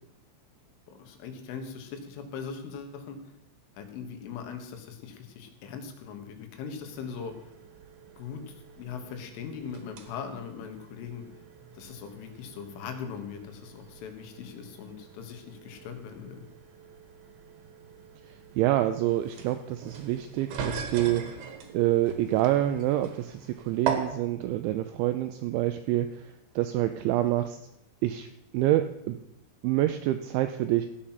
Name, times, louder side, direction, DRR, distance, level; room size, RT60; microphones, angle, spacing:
voice 1, 0.9-3.2 3.8-7.4 8.2-11.2 11.7-16.4, left 6 dB, 75° left, 6 dB, 3.8 m, -40 dB
sound 1, 6.8-24.0, right 7 dB, 60° right, 2.8 m, -41 dB
voice 2, 18.3-21.5 21.7-27.6 28.0-28.3 28.5-29.2 29.6-30.9, right 14 dB, 85° right, 9 dB, 2.6 m, -27 dB
15.0 x 8.9 x 5.8 m, 0.85 s
omnidirectional pair, 5.8 m